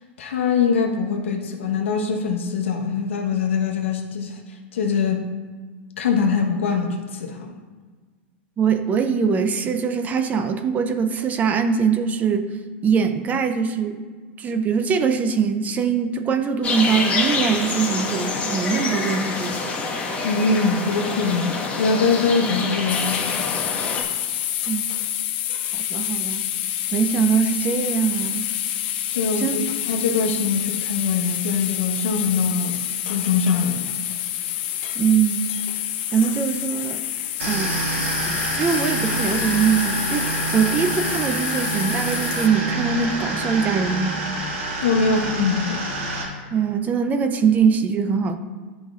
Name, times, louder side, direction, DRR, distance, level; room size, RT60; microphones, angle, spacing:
voice 1, 0.2-5.3 6.0-7.6 20.2-23.4 29.1-29.6 29.9-32.8 33.1-33.9 44.8-45.9, left 5 dB, 85° left, 2 dB, 1.1 m, -23 dB
voice 2, 8.6-12.6 12.8-14.1 14.4-19.7 24.7-24.8 25.7-26.4 26.9-28.5 29.4-29.7 35.0-35.5 36.1-37.0 37.5-37.8 38.3-44.2 46.5-48.4, right 6 dB, 25° right, 8 dB, 0.5 m, -22 dB
sound 1, 16.6-24.0, left 3 dB, 20° left, 1.2 m, -26 dB
sound 2, 22.9-42.5, left 12 dB, 60° left, 0.7 m, -28 dB
sound 3, 37.4-46.2, right 2 dB, 80° right, 1.9 m, -27 dB
11.0 x 5.2 x 2.5 m, 1.4 s
hypercardioid pair, 130°, 7 cm